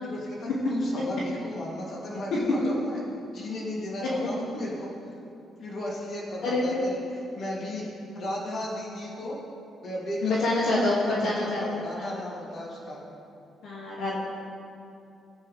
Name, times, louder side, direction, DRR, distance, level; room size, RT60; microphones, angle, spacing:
voice 1, 0.0-3.0 3.3-4.9 5.6-7.0 7.3-7.9 8.1-9.4 9.8-13.0, left 1 dB, 55° left, -4 dB, 3.0 m, -35 dB
voice 2, 6.4-6.8 10.2-12.2 13.6-14.2, left 2 dB, 80° left, -6 dB, 2.3 m, -27 dB
19.0 x 8.5 x 3.5 m, 2.5 s
cardioid pair, 90°, 0 cm